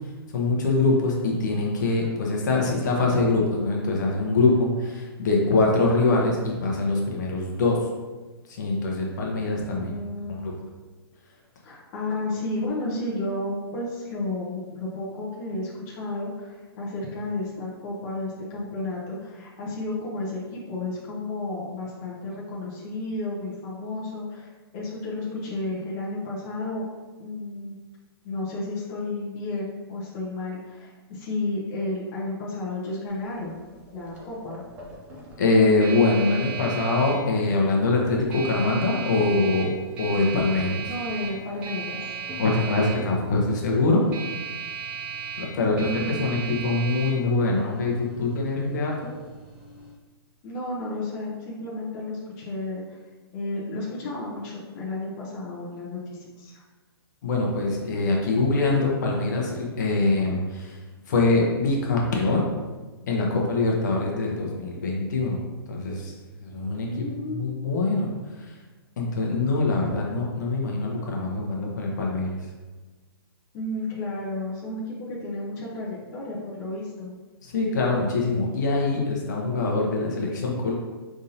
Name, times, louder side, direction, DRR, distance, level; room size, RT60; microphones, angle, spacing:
voice 1, 0.3-7.9 8.5-9.9 10.4-10.5 35.4-40.9 42.4-44.0 45.4-49.1 57.2-60.8 61.1-62.5 63.1-66.1 66.4-67.0 67.4-68.5 69.0-72.4 77.4-80.7, left 3 dB, 45° left, -1 dB, 0.9 m, -24 dB
voice 2, 9.7-10.6 11.6-24.5 24.7-26.9 27.2-27.7 28.2-33.6 33.9-34.6 40.9-42.0 45.5-46.8 50.4-53.0 53.3-56.6 66.8-67.7 73.5-77.1, left 2 dB, 20° left, -6 dB, 0.8 m, -32 dB
sound 1, 33.1-49.9, right 6 dB, 10° right, 0.4 m, -37 dB
5.2 x 3.6 x 2.8 m, 1.3 s
hypercardioid pair, 170°, 13 cm